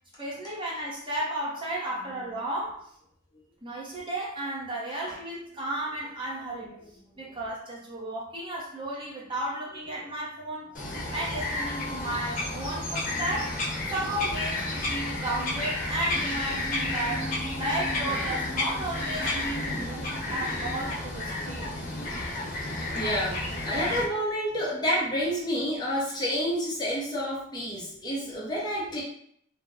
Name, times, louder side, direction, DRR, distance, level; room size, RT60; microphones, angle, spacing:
voice 1, 0.2-2.8 3.6-6.7 7.2-10.8 11.1-13.6 13.9-17.3 17.6-21.7, right 1 dB, 25° right, -5 dB, 0.7 m, -33 dB
voice 2, 9.7-10.0 21.3-21.7 22.9-29.0, equal, 20° left, -5 dB, 0.6 m, -29 dB
Bird vocalization bird call bird song, 10.7-24.0, left 2 dB, 40° left, 0.9 m, -31 dB
sound 1, 12.9-13.5 15.2-16.2 16.6-20.8, right 1 dB, 75° right, 0.6 m, -43 dB
2.7 x 2.1 x 3.7 m, 0.68 s
head